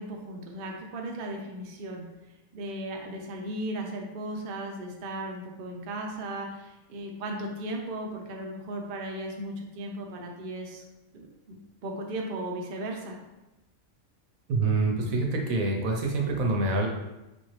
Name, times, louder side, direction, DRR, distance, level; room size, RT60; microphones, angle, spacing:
voice 1, 0.0-2.0 2.5-10.8 11.1-11.6 11.8-13.2, right 1 dB, 55° right, 1 dB, 0.6 m, -36 dB
voice 2, 14.5-16.9, right 3 dB, 75° right, 1 dB, 1.1 m, -26 dB
4.0 x 2.6 x 3.1 m, 1.0 s
omnidirectional pair, 1.5 m